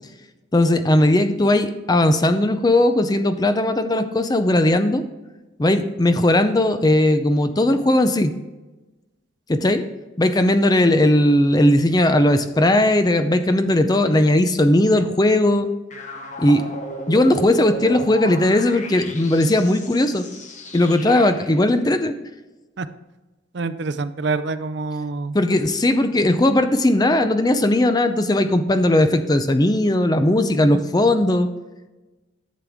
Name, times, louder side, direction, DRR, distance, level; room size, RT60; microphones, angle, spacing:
voice 1, 0.5-5.0 5.6-8.3 9.5-9.8 10.2-15.7 16.4-16.6 17.1-20.3 20.7-22.1 25.3-31.5, left 1 dB, 20° left, 9 dB, 0.5 m, -18 dB
sound 1, 15.9-21.6, right 1 dB, 40° left, 1.1 m, -34 dB
voice 2, 23.5-25.4, right 3 dB, 60° right, 12 dB, 0.5 m, -26 dB
11.0 x 7.5 x 3.6 m, 1.1 s
head